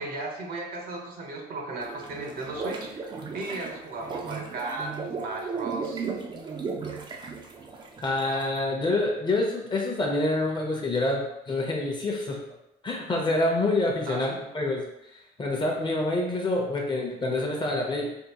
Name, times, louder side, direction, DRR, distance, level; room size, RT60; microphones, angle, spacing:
voice 1, 0.0-3.0 3.3-6.0 14.1-14.4, right 2 dB, 60° right, 1 dB, 0.8 m, -35 dB
sound 1, 1.8-8.6, right 4 dB, 25° right, 0.4 m, -36 dB
voice 2, 8.0-12.4 12.8-14.8 15.4-18.1, left 2 dB, 25° left, -1 dB, 0.7 m, -27 dB
3.5 x 2.4 x 2.9 m, 0.88 s
cardioid pair, 110°, 17 cm